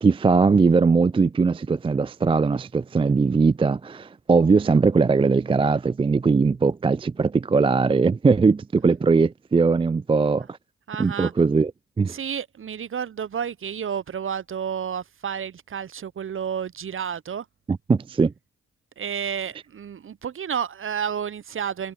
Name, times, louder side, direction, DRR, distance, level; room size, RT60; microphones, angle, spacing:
voice 1, 0.0-10.6 11.0-11.7 12.0-12.2 17.7-18.3, right 4 dB, 15° right, 0.4 m, -20 dB
voice 2, 10.9-11.3 12.1-17.5 19.0-21.9, right 8 dB, 40° right, 0.8 m, -31 dB
hypercardioid pair, 45°, 34 cm